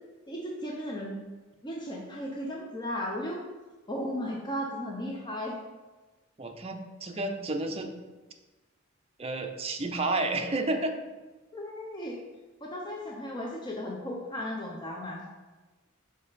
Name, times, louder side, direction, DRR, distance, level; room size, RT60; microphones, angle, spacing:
voice 1, 0.3-1.2 1.6-3.4 3.9-5.6 11.5-12.2 12.6-15.2, equal, 20° left, -2 dB, 0.8 m, -35 dB
voice 2, 6.4-7.9 9.2-10.9, right 2 dB, 30° right, 4 dB, 0.6 m, -31 dB
5.3 x 5.3 x 4.0 m, 1.2 s
head